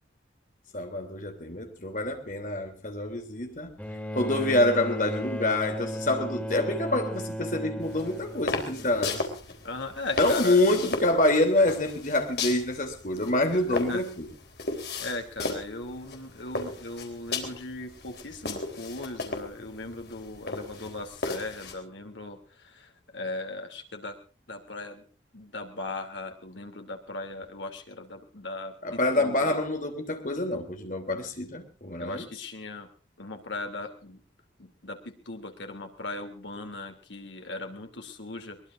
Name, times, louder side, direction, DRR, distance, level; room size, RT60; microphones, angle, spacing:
voice 1, 0.7-3.8 4.1-9.2 10.2-14.3 28.8-32.2, left 1 dB, 45° left, 3.1 m, -26 dB
Bowed string instrument, 3.8-9.2 10.4-10.5, equal, 10° left, 2.1 m, -35 dB
sound 1, 7.8-21.7, left 3 dB, 60° left, 3.7 m, -36 dB
voice 2, 9.6-10.9 13.5-14.0 15.0-24.2 24.5-25.0 25.3-29.6 32.0-32.9 33.2-34.2 34.6-38.6, left 2 dB, 80° left, 2.9 m, -38 dB
22.5 x 20.5 x 2.6 m
head